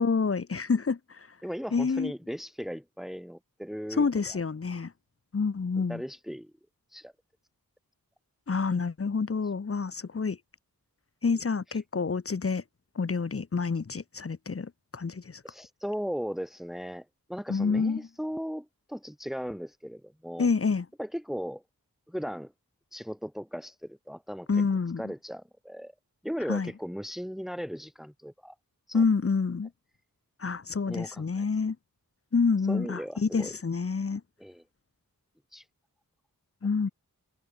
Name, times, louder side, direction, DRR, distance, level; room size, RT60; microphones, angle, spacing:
voice 1, 0.0-1.3 1.7-2.1 3.9-4.9 5.3-6.0 8.5-10.4 11.2-12.6 13.0-15.4 17.5-18.1 20.4-20.9 24.5-25.0 26.5-26.7 28.9-29.7 30.4-31.8 32.3-34.2 36.6-36.9, left 5 dB, 40° left, 0.7 m, -28 dB
voice 2, 1.4-4.4 5.8-6.5 6.9-7.1 11.7-11.8 15.4-20.5 21.0-21.6 22.1-22.5 22.9-24.5 25.0-25.9 26.2-28.5 28.9-29.0 30.9-31.5 32.7-33.5 34.4-34.6 35.5-35.6, equal, ahead, 3.1 m, -37 dB
wide cardioid pair, 50°, 36 cm